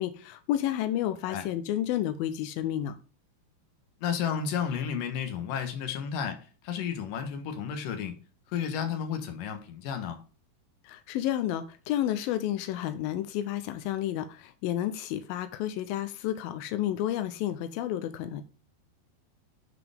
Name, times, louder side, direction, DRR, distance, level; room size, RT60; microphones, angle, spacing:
voice 1, 0.0-3.0 10.8-18.4, left 12 dB, 85° left, 2.1 m, -31 dB
voice 2, 4.0-8.1 8.5-10.2, left 7 dB, 65° left, 2.6 m, -32 dB
9.9 x 4.9 x 3.4 m
omnidirectional pair, 4.7 m